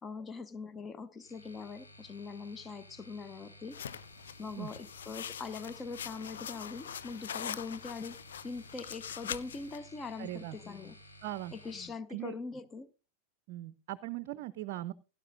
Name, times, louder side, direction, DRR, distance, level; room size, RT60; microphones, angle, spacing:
voice 1, 0.0-3.8 4.4-11.0 11.5-12.9, left 4 dB, 20° left, 0.7 m, -42 dB
sound 1, 1.2-11.9, equal, 85° left, 3.5 m, -55 dB
sound 2, 3.7-9.8, left 9 dB, 65° left, 0.7 m, -43 dB
voice 2, 10.2-10.6 11.2-11.5 12.1-12.4 13.5-14.9, right 15 dB, 50° right, 0.5 m, -39 dB
16.5 x 12.5 x 2.6 m
figure-of-eight pair, 90°, 0 cm